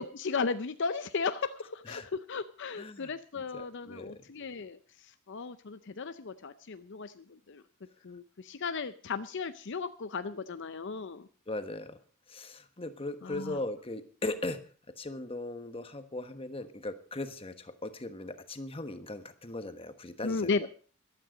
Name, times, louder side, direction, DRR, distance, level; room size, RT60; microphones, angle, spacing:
voice 1, 0.0-7.6 8.0-11.3 13.2-13.6 20.2-20.7, left 4 dB, 55° left, 11 dB, 0.6 m, -35 dB
voice 2, 2.8-4.3 11.5-12.0 12.3-20.7, left 2 dB, 25° left, 9 dB, 1.2 m, -39 dB
14.5 x 12.5 x 5.0 m, 0.40 s
head